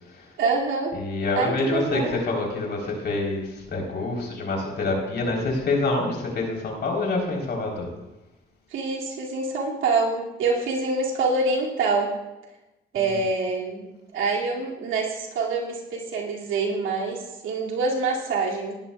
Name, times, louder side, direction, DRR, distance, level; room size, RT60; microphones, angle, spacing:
voice 1, 0.4-1.0 1.4-2.2 8.7-12.1 12.9-13.9 14.1-18.7, right 3 dB, 85° right, -2 dB, 2.4 m, -26 dB
voice 2, 0.9-7.9, left 2 dB, 55° left, 0 dB, 3.6 m, -26 dB
18.0 x 11.0 x 2.3 m, 1.0 s
cardioid pair, 90°, 20 cm